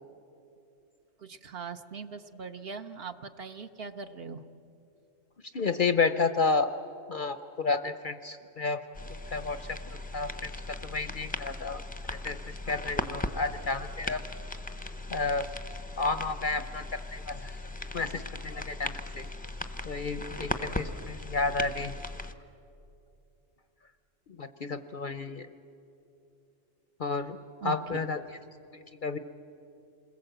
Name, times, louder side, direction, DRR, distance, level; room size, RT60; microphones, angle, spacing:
voice 1, 1.2-4.4 27.6-28.0, right 5 dB, 55° right, 9 dB, 0.9 m, -40 dB
voice 2, 5.5-6.7 7.1-8.8 9.3-9.8 10.1-10.5 10.8-11.8 12.1-12.4 12.7-14.2 15.1-15.5 16.0-17.5 17.9-19.3 19.9-21.9 24.4-25.5 27.0-27.4 27.6-28.2 28.7-29.2, left 4 dB, 50° left, 10 dB, 0.7 m, -31 dB
sound 1, 8.9-22.3, left 2 dB, 10° left, 0.6 m, -38 dB
28.0 x 21.0 x 7.8 m, 2.8 s
omnidirectional pair, 1.4 m